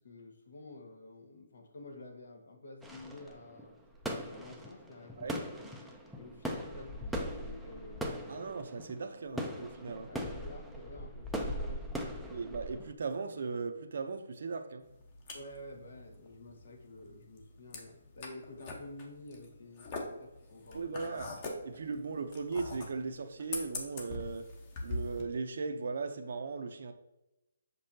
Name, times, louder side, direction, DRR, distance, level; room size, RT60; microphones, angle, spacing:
voice 1, 0.0-3.8 4.3-5.7 6.1-8.5 9.2-9.6 10.1-12.6 15.3-21.2, left 2 dB, 65° left, 1.5 m, -50 dB
sound 1, 2.8-12.9, equal, ahead, 0.5 m, -40 dB
voice 2, 8.3-10.1 12.3-14.8 20.7-21.3 21.6-24.5 24.8-26.9, right 4 dB, 60° right, 0.7 m, -38 dB
sound 2, 14.8-25.2, left 2 dB, 30° left, 1.2 m, -43 dB
6.7 x 5.3 x 2.8 m
hypercardioid pair, 160°, 0 cm